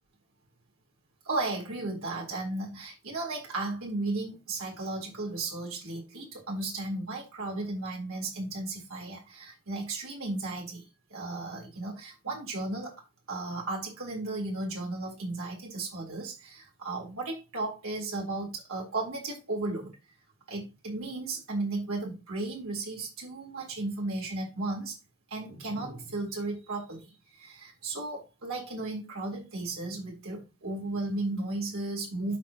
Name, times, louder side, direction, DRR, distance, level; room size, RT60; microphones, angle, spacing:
voice 1, 1.3-12.9 13.3-19.9 20.5-25.0 25.3-32.4, right 2 dB, 65° right, 3.6 m, -35 dB
12.5 x 4.8 x 2.9 m
head